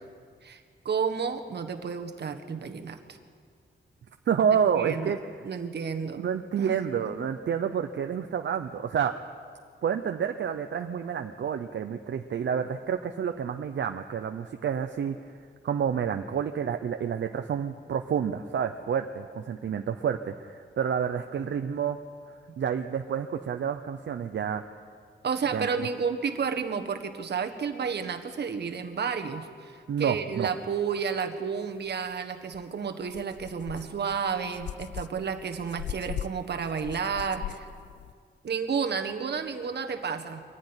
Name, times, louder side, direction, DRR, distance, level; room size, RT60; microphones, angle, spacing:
voice 1, 0.4-3.2 4.7-5.2 5.4-6.3 6.6-6.7 7.0-7.1 25.2-37.7 38.4-40.4, right 6 dB, 65° right, 6 dB, 1.5 m, -31 dB
voice 2, 4.3-5.2 6.2-9.1 9.8-15.4 15.6-22.0 22.6-24.6 25.5-25.9 29.9-30.5, right 7 dB, 80° right, 6 dB, 0.8 m, -29 dB
sound 1, 32.5-32.6 33.1-38.1, left 11 dB, 80° left, 0.5 m, -40 dB
23.5 x 15.0 x 9.9 m, 2.1 s
wide cardioid pair, 175°, 18 cm